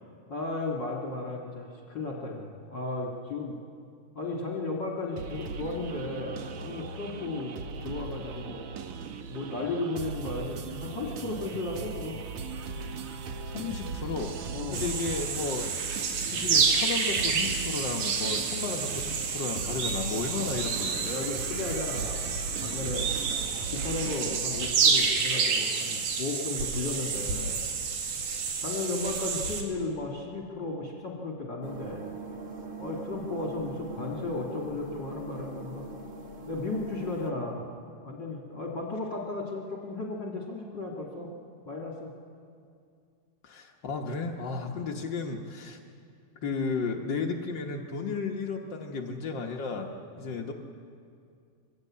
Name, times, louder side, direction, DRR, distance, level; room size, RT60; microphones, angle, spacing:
voice 1, 0.3-3.5 4.1-7.5 7.8-8.6 9.3-12.2 14.5-14.9 20.3-20.5 21.0-23.1 23.7-27.6 28.6-32.1 32.8-35.9 36.5-37.7 38.0-41.3 41.7-42.1 44.7-44.9 50.2-50.4, left 2 dB, 40° left, 1 dB, 2.0 m, -35 dB
sound 1, 5.2-24.4, right 4 dB, 65° right, 1.5 m, -38 dB
voice 2, 13.1-15.9 16.3-21.1 43.4-45.8 46.4-50.5, left 4 dB, 85° left, 1 dB, 1.0 m, -34 dB
sound 2, 14.7-29.6, right 5 dB, 90° right, 3.7 m, -29 dB
sound 3, 31.6-37.3, right 3 dB, 45° right, 1.0 m, -42 dB
23.5 x 16.5 x 8.5 m, 2.4 s
omnidirectional pair, 3.8 m